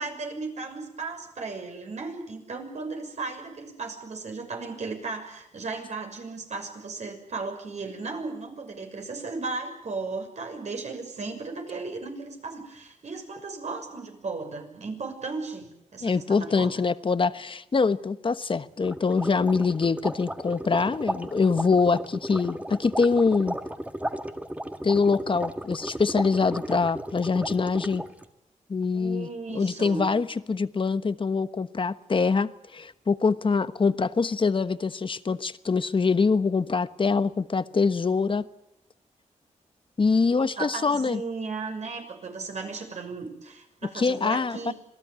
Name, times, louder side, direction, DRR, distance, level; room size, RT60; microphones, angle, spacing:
voice 1, 0.0-16.8 28.9-30.1 40.3-44.7, right 4 dB, 60° right, 6.5 m, -35 dB
voice 2, 16.0-23.6 24.8-28.0 28.7-38.5 40.0-41.2 43.9-44.7, left 4 dB, 40° left, 1.2 m, -24 dB
sound 1, 18.8-28.2, right 1 dB, 10° right, 1.9 m, -34 dB
26.5 x 18.0 x 9.6 m
cardioid pair, 70°, 13 cm